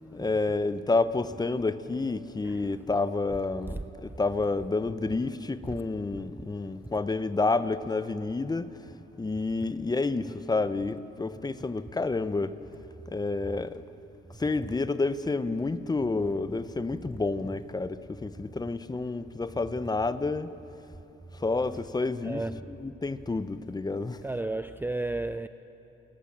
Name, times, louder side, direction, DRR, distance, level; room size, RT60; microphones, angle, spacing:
voice 1, 0.1-8.7 9.2-12.6 13.1-13.8 14.4-20.5 21.3-22.4 22.8-24.2, left 3 dB, 20° left, 0.9 m, -29 dB
voice 2, 2.4-2.9 3.7-4.2 5.6-5.8 6.8-6.9 22.2-22.8 24.2-25.5, right 2 dB, 10° right, 0.5 m, -34 dB
28.5 x 19.0 x 7.6 m
cardioid pair, 90°, 20 cm